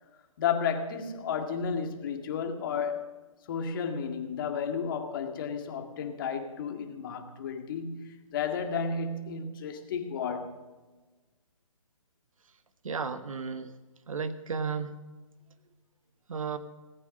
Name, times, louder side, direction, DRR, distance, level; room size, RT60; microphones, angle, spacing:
voice 1, 0.4-3.1 3.5-10.6, left 6 dB, 40° left, 5 dB, 2.0 m, -32 dB
voice 2, 12.8-13.7 14.1-14.9 16.3-16.6, right 5 dB, 75° right, 11 dB, 1.2 m, -33 dB
18.5 x 8.9 x 6.5 m, 1.2 s
hypercardioid pair, 150°, 18 cm